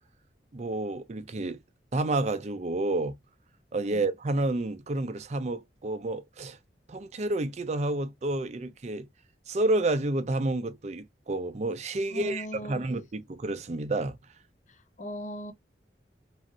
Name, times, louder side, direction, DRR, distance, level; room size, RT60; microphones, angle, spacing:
voice 1, 0.5-1.6 1.9-3.2 3.7-6.6 6.9-9.1 9.5-14.2, right 2 dB, 40° right, 0.5 m, -30 dB
voice 2, 12.1-12.9 14.7-15.5, left 1 dB, 45° left, 0.6 m, -39 dB
3.1 x 2.5 x 2.7 m
head